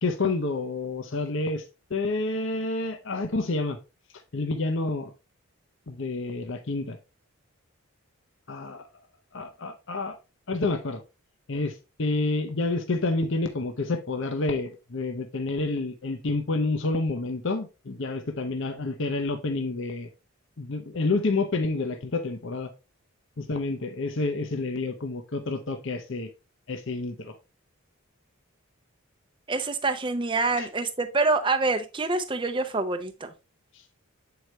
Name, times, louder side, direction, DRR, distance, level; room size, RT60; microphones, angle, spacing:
voice 1, 0.0-1.6 1.9-3.8 4.3-5.1 5.9-7.0 8.5-8.8 9.3-10.2 10.5-11.0 11.5-20.1 20.6-22.7 23.4-26.3 26.7-27.3 30.6-30.7, left 3 dB, 55° left, 0.7 m, -29 dB
voice 2, 29.5-33.3, right 3 dB, 20° right, 0.6 m, -26 dB
7.8 x 4.8 x 3.1 m
head